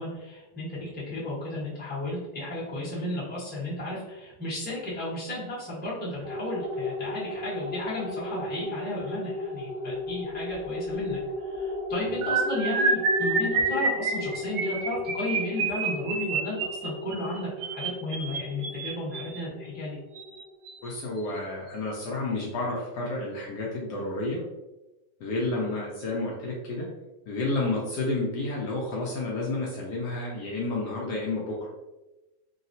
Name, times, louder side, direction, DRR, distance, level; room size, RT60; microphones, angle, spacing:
voice 1, 0.0-20.0, left 1 dB, 5° left, -9 dB, 0.7 m, -34 dB
sound 1, 6.2-21.0, left 2 dB, 50° right, 0.5 m, -35 dB
sound 2, 12.2-19.4 20.1-20.4 20.7-20.9 21.2-21.4, right 4 dB, 75° right, 1.3 m, -28 dB
voice 2, 20.8-24.4 25.2-26.9 27.3-31.7, left 2 dB, 70° left, -3 dB, 1.1 m, -30 dB
3.8 x 2.0 x 2.6 m, 1.0 s
omnidirectional pair, 2.1 m